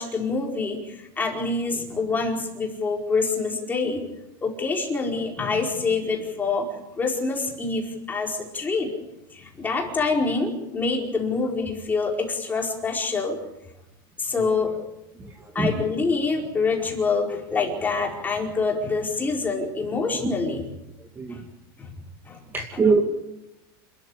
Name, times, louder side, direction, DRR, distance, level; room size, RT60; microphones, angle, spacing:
voice 1, 0.0-4.0 4.4-6.7 7.0-8.9 9.3-13.4 14.2-14.7 15.5-20.7 21.3-21.4 21.8-21.9 22.3-22.4 22.7-22.8, left 4 dB, 15° left, 0 dB, 4.7 m, -26 dB
voice 2, 22.5-23.0, right 4 dB, 15° right, 3 dB, 2.4 m, -21 dB
28.0 x 13.5 x 9.9 m, 0.93 s
supercardioid pair, 155°, 13 cm